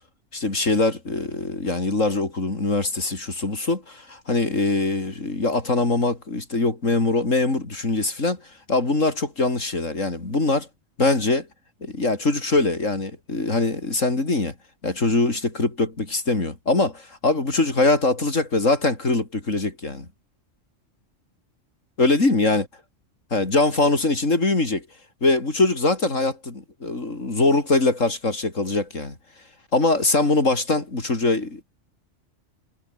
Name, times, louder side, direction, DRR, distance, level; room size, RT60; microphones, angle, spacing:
voice 1, 0.3-8.4 8.7-10.7 11.0-11.5 11.8-14.5 14.8-20.1 22.0-22.6 23.3-24.9 25.2-29.2 29.7-31.6, left 2 dB, 80° left, 4.6 m, -22 dB
omnidirectional pair, 1.3 m